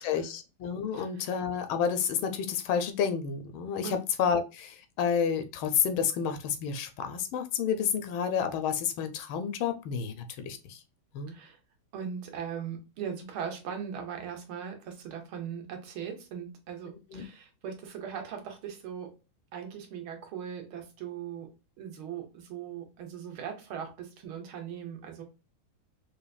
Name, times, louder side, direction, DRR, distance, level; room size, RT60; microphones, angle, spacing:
voice 1, 0.0-10.8 11.1-11.3 17.1-17.2, left 7 dB, 90° left, 1.4 m, -30 dB
voice 2, 0.9-1.3 3.8-4.0 11.3-11.6 11.9-19.2 19.5-21.5 21.8-25.2, right 8 dB, 85° right, 1.7 m, -39 dB
4.9 x 2.6 x 2.2 m
omnidirectional pair, 2.2 m